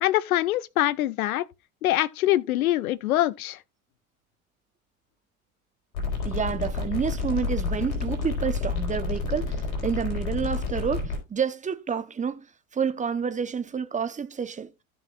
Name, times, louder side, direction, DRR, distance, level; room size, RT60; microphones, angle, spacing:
voice 1, 0.0-1.5 1.8-3.6, left 14 dB, 80° left, 0.6 m, -24 dB
sound 1, 5.9-11.2, left 4 dB, 60° left, 4.1 m, -29 dB
voice 2, 6.2-14.7, right 6 dB, 15° right, 0.8 m, -29 dB
15.5 x 5.7 x 2.4 m
hypercardioid pair, 80°, 42 cm